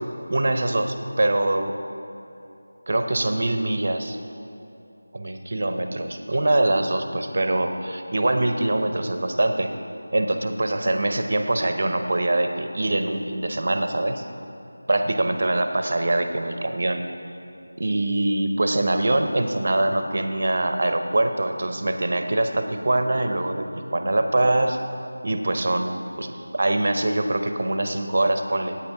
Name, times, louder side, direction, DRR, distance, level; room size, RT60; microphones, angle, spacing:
voice 1, 0.3-1.8 2.9-4.2 5.1-9.7 10.1-14.3 14.9-17.0 17.8-24.8 25.2-28.8, right 1 dB, 35° right, 7 dB, 0.7 m, -23 dB
14.5 x 8.8 x 4.6 m, 2.8 s
figure-of-eight pair, 180°, 0 cm